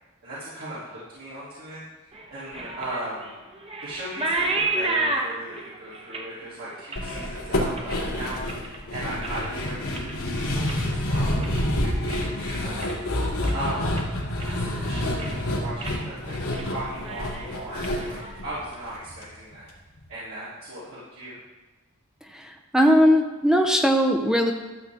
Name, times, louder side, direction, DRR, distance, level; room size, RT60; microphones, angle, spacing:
voice 1, 0.2-1.8 2.3-3.3 3.8-12.8 13.5-14.0 14.4-16.3 16.6-19.7 20.1-21.4, right 1 dB, 70° right, -11 dB, 3.1 m, -37 dB
sound 1, 2.1-8.8 9.1-9.6 9.9-12.4 12.7-13.1 13.4-13.6 14.0-14.8 15.1-15.4 15.8-16.0 16.3-16.7 17.0-18.8, right 2 dB, 25° right, 1.1 m, -32 dB
sound 2, 7.0-19.2 19.5-19.6 20.0-20.1, left 1 dB, 85° left, 2.4 m, -28 dB
voice 2, 22.3-24.5, equal, 5° right, 3 dB, 0.7 m, -19 dB
13.0 x 7.9 x 3.5 m, 1.2 s
head